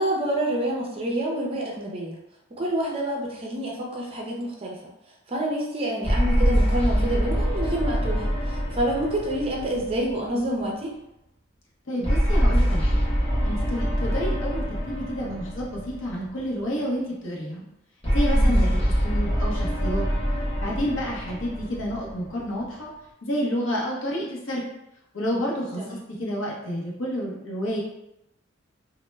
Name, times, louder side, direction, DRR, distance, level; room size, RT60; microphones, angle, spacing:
voice 1, 0.0-2.2 2.6-4.8 5.3-10.9 18.3-18.6 25.8-26.0, right 1 dB, 25° right, -1 dB, 0.4 m, -28 dB
sound 1, 6.0-10.6 12.0-16.4 18.0-22.6, equal, 25° left, 0.7 m, -24 dB
voice 2, 11.9-13.0 13.4-17.6 18.1-20.0 20.6-22.9 23.2-24.6 25.1-27.8, equal, 65° left, -3 dB, 0.7 m, -29 dB
2.1 x 2.0 x 3.2 m, 0.85 s
head